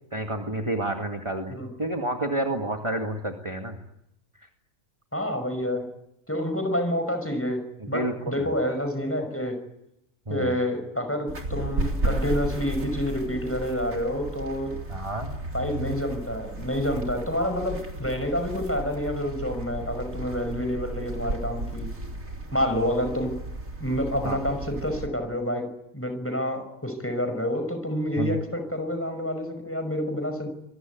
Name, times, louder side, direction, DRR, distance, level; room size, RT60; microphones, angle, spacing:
voice 1, 0.1-3.8 4.4-4.5 7.8-8.5 10.3-10.5 14.9-15.3 24.2-24.4 28.2-28.4, right 1 dB, 20° right, 3 dB, 2.2 m, -30 dB
voice 2, 5.1-5.9 6.3-7.6 7.9-9.6 10.3-14.8 15.5-21.9 22.5-23.3 23.8-25.7 25.9-30.5, equal, 10° left, 6 dB, 5.8 m, -28 dB
sound 1, 11.3-25.1, right 1 dB, 80° right, 4.0 m, -34 dB
26.5 x 23.0 x 9.4 m, 0.85 s
omnidirectional pair, 1.4 m